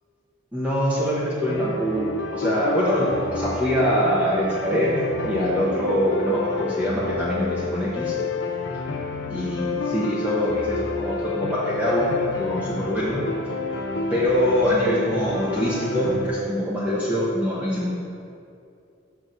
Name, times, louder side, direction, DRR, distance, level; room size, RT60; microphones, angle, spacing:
voice 1, 0.5-4.9 5.2-8.2 8.9-9.0 9.3-13.2 14.1-18.0, equal, 5° right, -8 dB, 0.9 m, -24 dB
sound 1, 1.5-16.3, left 4 dB, 60° left, 0.6 m, -29 dB
6.1 x 4.7 x 6.5 m, 2.5 s
head